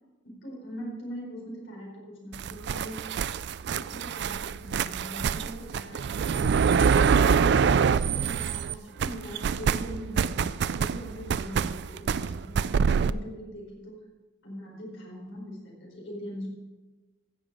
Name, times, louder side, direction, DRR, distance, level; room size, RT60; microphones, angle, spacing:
voice 1, 0.2-3.0 3.6-6.7 7.1-14.0 14.4-16.5, equal, 75° left, -3 dB, 4.7 m, -41 dB
sound 1, 2.3-8.7 9.0-13.1, right 6 dB, 55° right, 0.3 m, -25 dB
15.5 x 7.4 x 5.0 m, 1.2 s
head